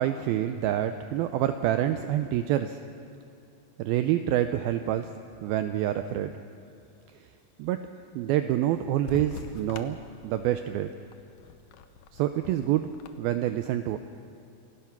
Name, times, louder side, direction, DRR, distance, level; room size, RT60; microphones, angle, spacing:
voice 1, 0.0-2.8 3.8-5.1 5.4-6.3 7.6-7.8 8.1-10.0 10.2-10.9 12.1-12.9 13.2-14.0, right 12 dB, 80° right, 9 dB, 2.3 m, -27 dB
sound 1, 9.1-13.1, left 6 dB, 75° left, 2.0 m, -44 dB
27.0 x 17.0 x 5.9 m, 2.5 s
omnidirectional pair, 4.7 m